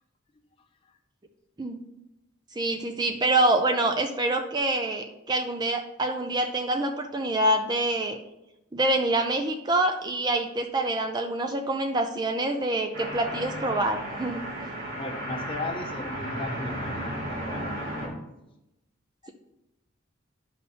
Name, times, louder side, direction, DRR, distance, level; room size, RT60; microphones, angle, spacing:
voice 1, 2.6-8.2 8.7-14.4, right 2 dB, 20° right, 0.4 m, -26 dB
sound 1, 12.9-18.1, right 1 dB, 90° right, 2.1 m, -34 dB
voice 2, 14.9-18.2 19.2-19.3, left 2 dB, 25° left, 0.7 m, -37 dB
11.0 x 5.4 x 2.8 m
head